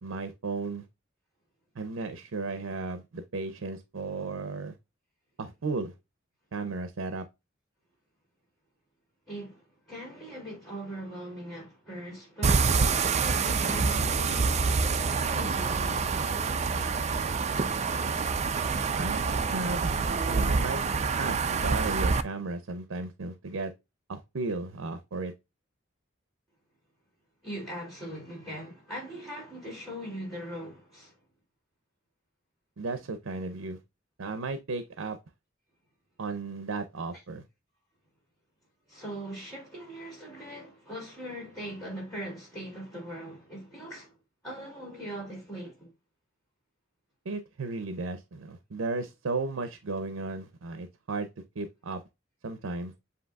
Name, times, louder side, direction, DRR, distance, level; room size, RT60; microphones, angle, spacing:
voice 1, 0.0-0.9 1.7-4.7 5.4-5.9 6.5-7.2 19.0-23.7 24.1-25.3 32.8-33.8 34.2-35.2 36.2-37.4 47.2-51.3 51.6-52.0 52.4-52.9, right 3 dB, 85° right, 0.6 m, -35 dB
voice 2, 9.3-14.5 14.8-16.1 27.4-31.1 38.9-44.1 44.4-45.9, equal, ahead, 2.4 m, -40 dB
sound 1, 12.4-22.2, right 4 dB, 35° right, 0.4 m, -27 dB
7.8 x 2.7 x 2.3 m
head